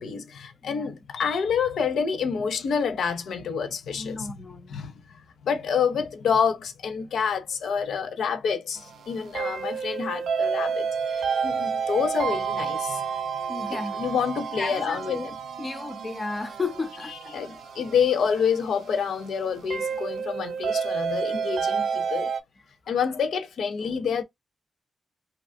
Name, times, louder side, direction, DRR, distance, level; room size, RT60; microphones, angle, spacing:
voice 1, 0.0-4.3 4.7-4.9 5.4-13.0 14.0-15.3 17.3-22.3 22.9-24.2, left 6 dB, 85° left, 0.6 m, -27 dB
voice 2, 0.6-0.9 4.0-4.9 13.5-14.1 14.6-17.6, left 3 dB, 25° left, 0.4 m, -34 dB
sound 1, 8.8-22.4, right 6 dB, 85° right, 0.3 m, -30 dB
2.8 x 2.4 x 2.5 m
wide cardioid pair, 140°, 0 cm